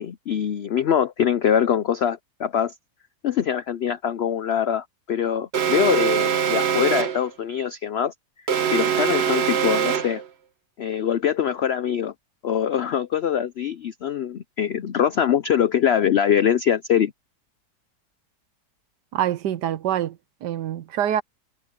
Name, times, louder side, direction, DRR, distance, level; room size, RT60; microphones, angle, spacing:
voice 1, 0.0-2.7 3.2-8.1 8.7-10.2 10.8-12.1 12.4-17.1, left 9 dB, 90° left, 0.5 m, -23 dB
Alarm, 5.5-7.3 8.5-10.3, right 8 dB, 45° right, 1.2 m, -23 dB
voice 2, 19.1-21.2, right 11 dB, 80° right, 1.4 m, -25 dB
omnidirectional pair, 1.8 m